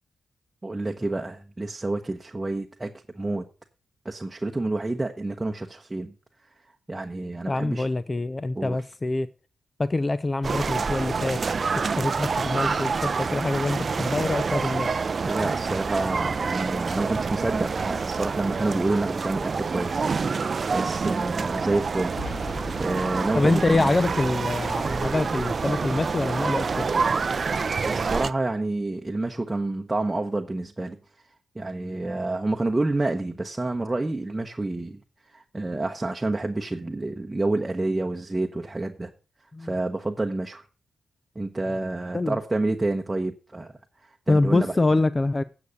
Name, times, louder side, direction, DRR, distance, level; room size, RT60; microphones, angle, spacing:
voice 1, 0.6-3.4 4.0-6.1 6.9-7.9 8.5-8.8 15.2-20.1 20.7-22.2 22.7-24.0 27.8-31.0 31.5-35.0 35.3-39.1 39.6-40.6 41.3-43.7 44.3-44.8, right 2 dB, 20° right, 1.0 m, -28 dB
voice 2, 7.5-9.3 9.8-11.4 12.0-14.9 23.3-26.9 39.5-39.7 42.1-42.4 44.3-45.4, left 2 dB, 25° left, 0.6 m, -25 dB
sound 1, 10.4-28.3, right 5 dB, 45° right, 0.5 m, -27 dB
Boom, 22.2-26.6, left 2 dB, 60° left, 4.8 m, -41 dB
9.4 x 7.0 x 6.4 m
cardioid pair, 80°, 0 cm